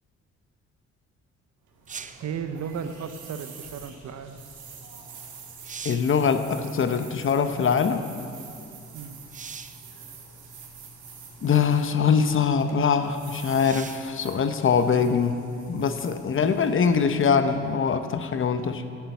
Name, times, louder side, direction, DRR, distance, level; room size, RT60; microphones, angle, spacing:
sound 1, 1.6-17.8, right 4 dB, 75° right, 2.0 m, -46 dB
sound 2, 1.9-2.3 5.0-5.1 5.5-6.2 9.3-9.9 10.9-11.0 13.6-14.1 17.7-17.8, right 6 dB, 25° right, 0.5 m, -40 dB
voice 1, 2.2-4.4 8.9-9.2 16.4-16.5 18.5-18.9, right 7 dB, 60° right, 9 dB, 0.8 m, -35 dB
voice 2, 5.8-8.0 11.4-15.3 15.7-18.8, left 6 dB, 45° left, 9 dB, 0.8 m, -23 dB
11.0 x 7.5 x 8.4 m, 2.4 s
cardioid pair, 90°, 30 cm